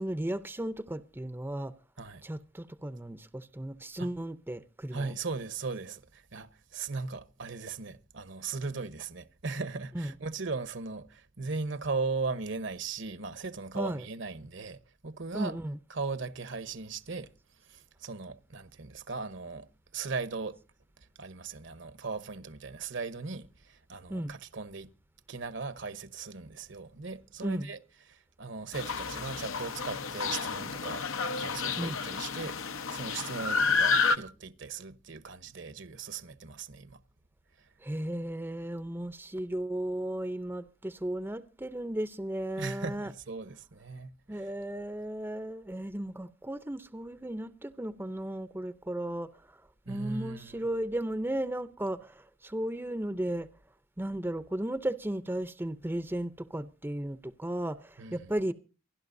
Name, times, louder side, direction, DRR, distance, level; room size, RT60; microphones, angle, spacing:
voice 1, 0.0-1.7 2.2-5.2 9.9-10.1 13.7-14.0 15.3-15.8 24.1-24.3 27.4-27.7 31.8-32.0 37.8-43.1 44.3-49.4 49.9-53.5 54.0-58.5, right 1 dB, 10° right, 0.6 m, -35 dB
voice 2, 4.9-15.6 15.9-17.3 17.6-20.6 21.0-24.9 25.3-27.8 28.1-31.1 31.4-32.6 32.9-37.0 37.6-37.7 42.6-44.5 49.9-50.7 58.0-58.3, right 4 dB, 65° right, 1.0 m, -38 dB
sound 1, 28.7-34.2, left 4 dB, 90° left, 1.0 m, -30 dB
28.0 x 11.5 x 2.6 m
head